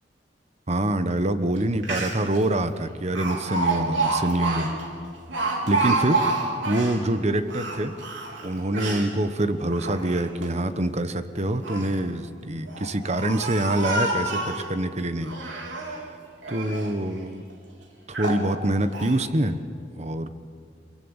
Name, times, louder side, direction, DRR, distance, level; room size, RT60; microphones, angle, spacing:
voice 1, 0.7-4.7 5.4-6.2 6.7-7.9 8.4-15.3 16.5-17.4 18.1-19.6 20.0-20.3, right 1 dB, 35° right, 11 dB, 1.1 m, -25 dB
Speech, 1.6-1.7 1.8-2.4 3.2-7.0 7.5-9.1 9.7-10.5 11.4-12.0 12.7-14.7 15.2-16.0 16.4-16.9 17.5-17.6 18.1-18.5 18.9-19.2, right 3 dB, 80° right, 3.7 m, -28 dB
23.5 x 23.0 x 8.1 m, 2.3 s
head